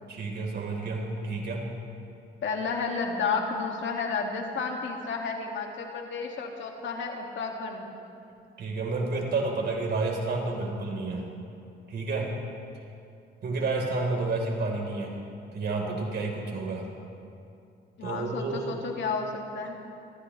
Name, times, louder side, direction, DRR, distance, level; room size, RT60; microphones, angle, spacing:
voice 1, 0.1-1.7 8.6-11.3 11.9-12.3 13.4-15.1 15.5-16.9 18.0-18.7, right 3 dB, 55° right, 0 dB, 4.0 m, -30 dB
voice 2, 2.4-7.9 13.4-13.6 16.2-16.4 18.0-19.8, left 4 dB, 70° left, 1 dB, 2.1 m, -32 dB
28.0 x 15.0 x 3.3 m, 2.6 s
cardioid pair, 90°, 20 cm